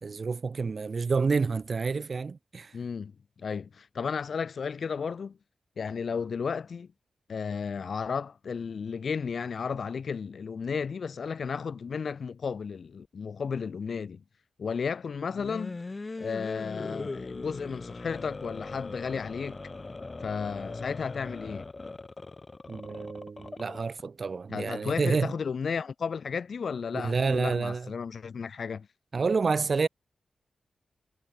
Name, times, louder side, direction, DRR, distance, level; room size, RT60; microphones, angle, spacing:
voice 1, 0.0-2.8 22.7-25.3 26.9-27.9 29.1-29.9, right 4 dB, 55° right, 1.0 m, -29 dB
voice 2, 2.7-3.1 3.4-5.4 5.8-6.9 7.3-14.2 14.6-15.8 16.2-19.6 20.2-21.7 24.5-28.9, left 6 dB, 70° left, 2.5 m, -33 dB
sound 1, 15.3-24.0, left 3 dB, 35° left, 6.5 m, -40 dB
cardioid pair, 70°, 0 cm